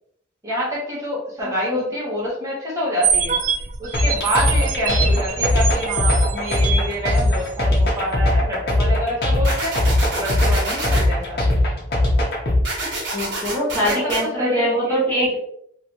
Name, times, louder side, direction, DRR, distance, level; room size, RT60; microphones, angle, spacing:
voice 1, 0.4-3.4 3.8-9.8 10.1-11.6 13.7-15.0, equal, 15° right, -6 dB, 1.0 m, -27 dB
sound 1, 3.0-7.6, right 6 dB, 40° right, 0.3 m, -25 dB
sound 2, 3.9-12.6, left 1 dB, 55° left, 0.9 m, -19 dB
sound 3, 9.4-11.0 12.6-14.2, right 2 dB, 70° right, 1.2 m, -27 dB
voice 2, 13.1-15.4, equal, 10° left, -7 dB, 1.0 m, -22 dB
3.2 x 2.8 x 2.9 m, 0.70 s
head